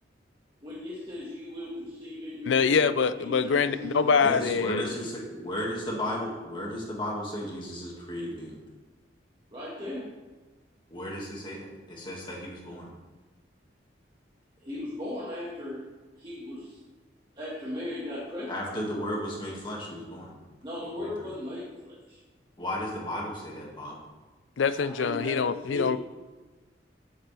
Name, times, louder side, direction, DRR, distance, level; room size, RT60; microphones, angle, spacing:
voice 1, 0.6-4.3 4.7-5.0 9.5-10.1 14.6-15.8 16.2-16.8 17.4-18.6 20.6-22.2 24.7-25.9, left 1 dB, 25° right, -7 dB, 1.8 m, -37 dB
voice 2, 2.5-4.9 24.6-26.0, left 5 dB, 85° left, 14 dB, 0.5 m, -24 dB
voice 3, 4.2-8.6 10.9-11.6 11.9-12.9 18.5-20.3 21.0-21.3 22.6-24.0, left 1 dB, 25° left, -4 dB, 2.1 m, -34 dB
14.0 x 7.5 x 3.5 m, 1.3 s
head